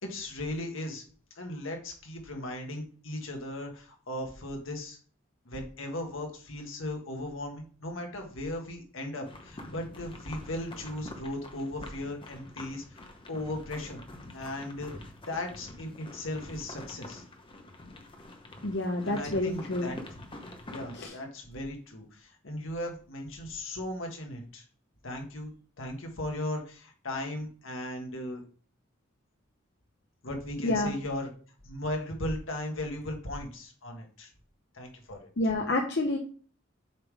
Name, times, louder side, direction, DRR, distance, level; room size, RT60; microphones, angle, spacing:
voice 1, 0.0-1.0 1.3-5.0 5.4-14.1 14.3-17.2 19.0-20.0 20.7-24.6 25.0-25.5 25.8-28.4 30.2-31.3 31.6-34.3 34.7-35.3, left 1 dB, 75° left, 2 dB, 1.6 m, -37 dB
sound 1, 9.2-21.1, left 1 dB, 25° left, 1.0 m, -46 dB
voice 2, 18.6-19.9 20.9-21.1 30.6-30.9 35.4-36.2, left 2 dB, 55° left, 2 dB, 0.8 m, -28 dB
7.5 x 3.7 x 4.8 m, 0.42 s
head